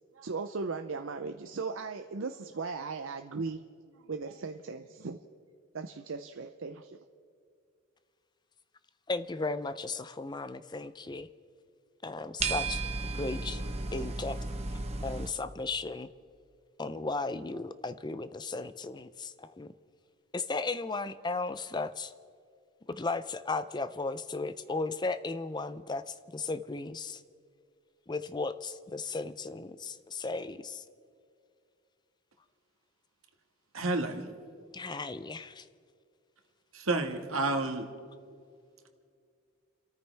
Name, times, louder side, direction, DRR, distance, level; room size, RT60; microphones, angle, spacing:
voice 1, 0.1-3.6 4.1-5.2 5.7-7.0, right 4 dB, 70° right, 6 dB, 0.6 m, -37 dB
voice 2, 9.1-11.3 12.0-12.8 13.1-13.6 13.9-14.4 15.0-16.1 16.8-19.7 20.3-22.1 22.9-27.2 28.1-30.8 34.7-35.6, left 3 dB, 20° left, 13 dB, 0.5 m, -35 dB
sound 1, 12.4-15.3, right 3 dB, 30° right, 1.1 m, -34 dB
voice 3, 33.7-34.2 36.7-37.9, right 2 dB, 90° right, 5 dB, 1.7 m, -30 dB
30.0 x 14.0 x 3.4 m, 2.3 s
head